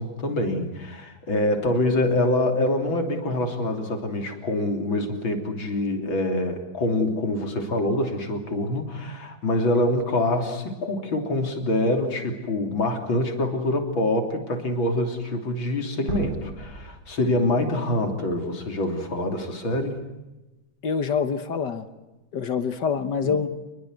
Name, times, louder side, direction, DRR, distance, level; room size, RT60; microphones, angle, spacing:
voice 1, 0.0-20.0, left 1 dB, 85° left, 4 dB, 4.0 m, -25 dB
sound 1, 16.1-19.0, right 2 dB, 55° right, 4.8 m, -38 dB
voice 2, 20.8-21.8 22.3-23.5, left 6 dB, 65° left, 10 dB, 1.8 m, -25 dB
28.0 x 21.0 x 8.0 m, 1.1 s
omnidirectional pair, 2.1 m